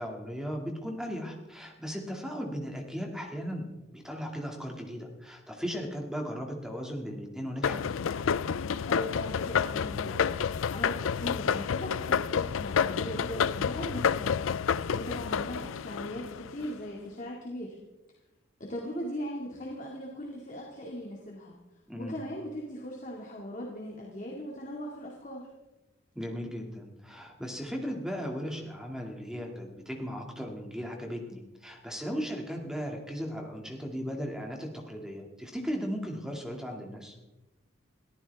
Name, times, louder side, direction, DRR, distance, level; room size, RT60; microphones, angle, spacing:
voice 1, 0.0-7.8 21.9-22.2 26.1-37.2, equal, 5° right, 1 dB, 2.3 m, -37 dB
sound 1, 7.6-16.7, left 7 dB, 80° left, 0.4 m, -29 dB
voice 2, 8.9-14.4 14.9-17.8 18.6-21.6 22.0-25.5, equal, 35° left, -2 dB, 2.2 m, -39 dB
22.5 x 14.5 x 3.5 m, 1.1 s
head